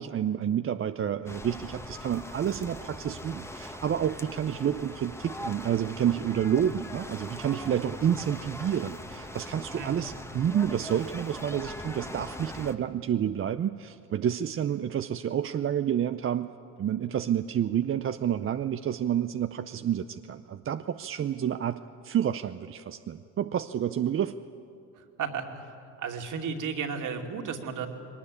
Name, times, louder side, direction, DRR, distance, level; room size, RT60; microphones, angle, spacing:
voice 1, 0.0-16.5 16.8-24.3, right 9 dB, 35° right, 10 dB, 0.6 m, -29 dB
sound 1, 1.3-12.7, left 1 dB, 5° left, 1.3 m, -41 dB
voice 2, 25.0-25.6 26.0-27.9, right 6 dB, 50° right, 4 dB, 2.7 m, -34 dB
21.0 x 19.0 x 9.8 m, 2.6 s
supercardioid pair, 80°, 39 cm